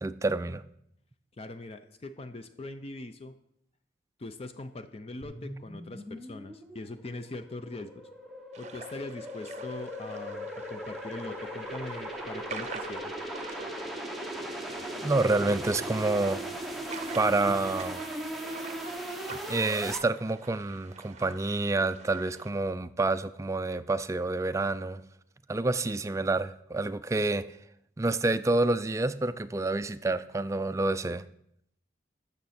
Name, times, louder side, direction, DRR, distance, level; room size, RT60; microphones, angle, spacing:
voice 1, 0.0-0.6 15.0-16.4 17.1-18.0 19.3-25.0 25.5-27.5 28.0-31.2, right 2 dB, 15° right, 0.4 m, -28 dB
voice 2, 1.4-3.4 4.2-7.9 8.6-13.1, left 2 dB, 35° left, 0.5 m, -41 dB
sound 1, 5.2-20.0, right 1 dB, ahead, 0.9 m, -38 dB
sound 2, 8.5-22.5, right 5 dB, 40° right, 0.7 m, -47 dB
13.0 x 6.7 x 4.3 m
head